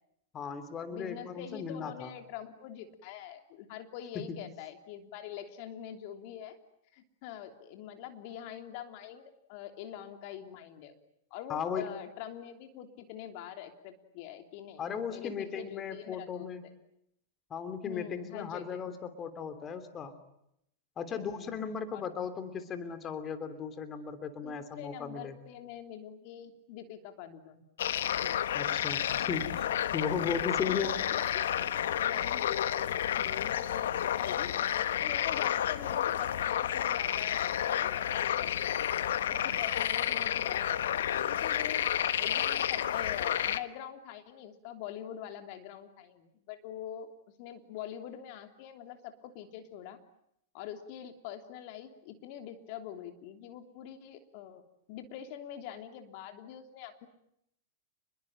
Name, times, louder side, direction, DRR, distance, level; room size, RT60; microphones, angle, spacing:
voice 1, 0.3-2.1 4.1-4.4 11.5-11.9 14.8-16.6 17.5-20.2 21.0-25.4 28.5-29.7 29.9-31.1, left 6 dB, 30° left, 10 dB, 3.1 m, -36 dB
voice 2, 0.9-6.6 6.9-9.2 9.5-11.0 11.3-16.5 17.8-18.8 21.1-22.0 24.4-27.6 30.7-31.5 31.8-38.7 39.3-41.8 42.2-47.1 47.4-50.0 50.5-54.6 54.9-57.1, left 10 dB, 55° left, 7 dB, 3.2 m, -44 dB
sound 1, 27.8-43.6, left 10 dB, 75° left, 1.4 m, -31 dB
29.5 x 22.0 x 9.0 m, 0.76 s
hypercardioid pair, 110°, 0 cm